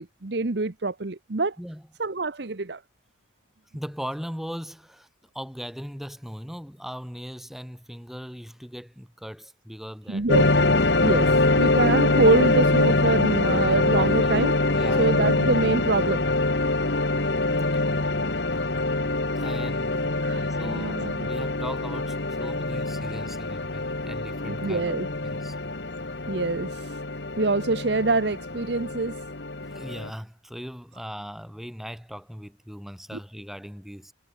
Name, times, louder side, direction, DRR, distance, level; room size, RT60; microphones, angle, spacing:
voice 1, 0.0-1.5 2.0-2.8 10.1-10.4 11.0-11.3 11.6-14.5 15.0-16.2 20.2-21.3 24.5-25.1 26.3-26.7 27.4-29.1, right 3 dB, 60° right, 1.0 m, -25 dB
voice 2, 3.7-10.3 13.8-14.4 14.7-15.1 18.8-18.9 19.4-24.9 25.2-25.6 29.6-34.1, equal, ahead, 3.1 m, -39 dB
sound 1, 10.3-30.1, left 2 dB, 60° left, 1.7 m, -24 dB
head